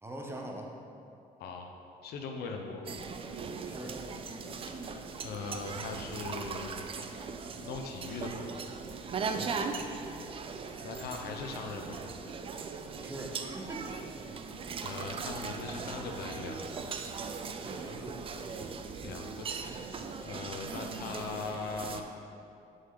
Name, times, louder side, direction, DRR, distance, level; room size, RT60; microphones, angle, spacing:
voice 1, 0.0-0.7 3.7-4.0 9.4-9.7 13.0-14.0 17.6-18.3, right 1 dB, 15° right, 1 dB, 0.8 m, -42 dB
voice 2, 2.0-2.8 4.8-6.7 7.5-8.5 10.8-12.0 14.8-16.9 19.0-19.7 20.2-22.0, left 4 dB, 70° left, 3 dB, 0.7 m, -40 dB
sound 1, 2.8-22.0, right 5 dB, 35° right, 0.4 m, -39 dB
6.6 x 5.4 x 3.8 m, 2.6 s
cardioid pair, 110°, 17 cm